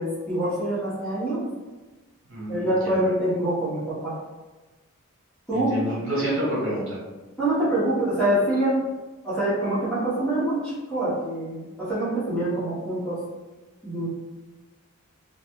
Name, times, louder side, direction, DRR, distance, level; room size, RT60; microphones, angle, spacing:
voice 1, 0.0-1.4 2.5-4.2 5.5-5.7 7.4-8.8 9.2-13.2 13.8-14.1, right 1 dB, 5° left, -12 dB, 1.1 m, -25 dB
voice 2, 2.3-3.0 5.5-7.0, right 1 dB, 60° right, -7 dB, 1.2 m, -28 dB
2.9 x 2.3 x 3.0 m, 1.2 s
head